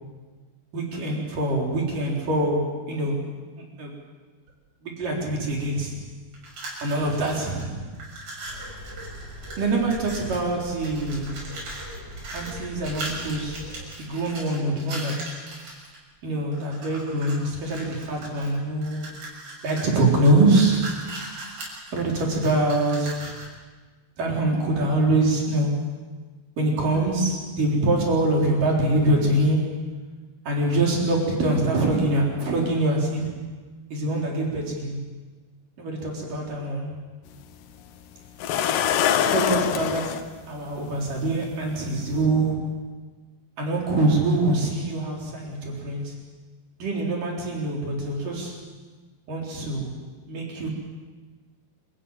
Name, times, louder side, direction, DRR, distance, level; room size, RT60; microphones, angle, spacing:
voice 1, 0.7-3.9 4.8-6.0 6.8-7.9 9.6-11.4 12.3-13.7 14.0-15.4 16.2-19.1 19.6-21.2 21.9-23.3 24.2-26.0 26.6-29.9 30.5-33.4 33.9-35.0 35.8-36.9 39.3-42.9 43.6-46.2 46.8-48.7 49.3-49.9 50.3-50.7, right 2 dB, 60° right, -1 dB, 5.5 m, -24 dB
sound 1, 6.3-7.6 7.9-10.5 10.8-16.0 16.5-17.4 17.7-23.6, right 2 dB, 80° right, 8.5 m, -39 dB
sound 2, 8.5-13.9, left 1 dB, 40° left, 7.4 m, -41 dB
sound 3, 37.3-37.4 38.4-40.2 41.4-41.5 42.1-42.2, left 9 dB, 70° left, 2.5 m, -23 dB
27.5 x 15.0 x 9.2 m, 1.4 s
omnidirectional pair, 4.4 m